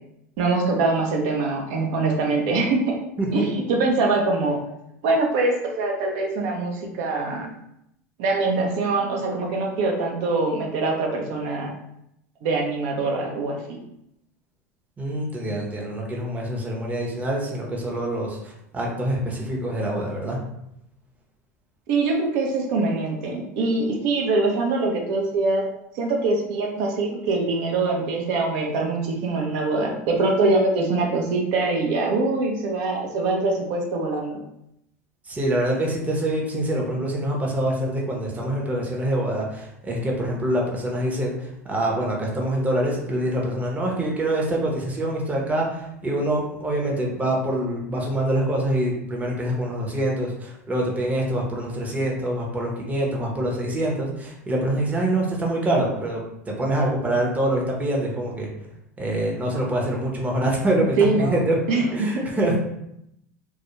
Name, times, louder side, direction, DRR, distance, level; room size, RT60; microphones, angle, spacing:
voice 1, 0.4-3.0 3.3-4.6 5.0-7.5 8.2-11.7 12.4-13.8 21.9-25.6 25.9-34.4 61.0-61.4 61.7-62.3, right 3 dB, 65° right, 1 dB, 0.6 m, -23 dB
voice 2, 15.0-20.4 35.3-58.5 59.0-61.6 61.9-62.6, right 1 dB, 20° right, -1 dB, 0.7 m, -25 dB
2.3 x 2.1 x 3.0 m, 0.81 s
hypercardioid pair, 95°, 8 cm